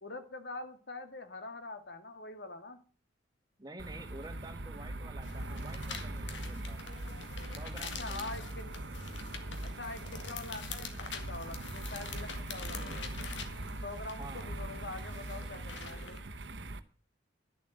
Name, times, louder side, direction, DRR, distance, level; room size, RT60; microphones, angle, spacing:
voice 1, 0.0-2.8 8.0-8.7 9.8-13.3 13.8-16.2, left 2 dB, 65° left, 8 dB, 1.9 m, -44 dB
voice 2, 3.6-6.9 7.5-8.4 14.2-14.5, right 2 dB, 20° right, 7 dB, 1.4 m, -49 dB
sound 1, 3.8-16.8, right 1 dB, 70° right, 1.0 m, -41 dB
sound 2, 5.2-16.2, left 5 dB, 80° left, 1.9 m, -46 dB
12.0 x 7.3 x 7.6 m, 0.40 s
head